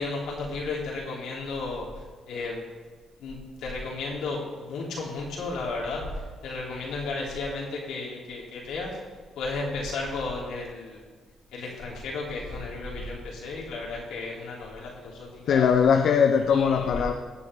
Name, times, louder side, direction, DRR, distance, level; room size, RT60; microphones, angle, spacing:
voice 1, 0.0-1.9 2.3-2.6 3.2-6.0 6.4-8.9 9.3-11.0 11.5-15.7 16.5-17.1, left 3 dB, 85° left, -4 dB, 3.4 m, -33 dB
voice 2, 15.5-17.1, left 7 dB, 70° left, 5 dB, 0.7 m, -21 dB
19.0 x 7.4 x 3.7 m, 1.5 s
cardioid pair, 90°, 0 cm